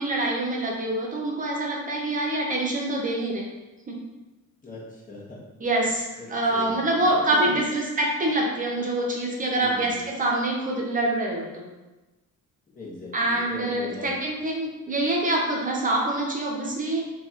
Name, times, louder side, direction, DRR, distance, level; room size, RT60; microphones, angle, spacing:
voice 1, 0.0-3.4 3.9-4.0 5.6-11.6 13.1-17.0, right 1 dB, 25° right, -1 dB, 0.5 m, -25 dB
voice 2, 4.6-5.4 6.2-7.6 9.6-10.1 12.7-14.1, left 2 dB, 25° left, -7 dB, 1.0 m, -39 dB
4.1 x 2.9 x 2.4 m, 1.1 s
wide cardioid pair, 175°, 33 cm